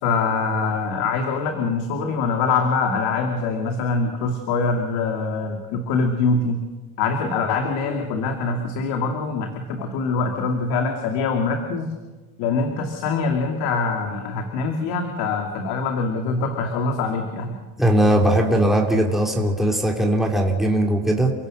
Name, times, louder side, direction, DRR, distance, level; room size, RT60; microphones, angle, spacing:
voice 1, 0.0-6.6 7.0-11.9 12.4-17.5, left 4 dB, 85° left, 3 dB, 2.7 m, -24 dB
voice 2, 17.8-21.3, right 1 dB, ahead, 0 dB, 3.2 m, -19 dB
30.0 x 16.5 x 6.6 m, 1.2 s
cardioid pair, 130°, 38 cm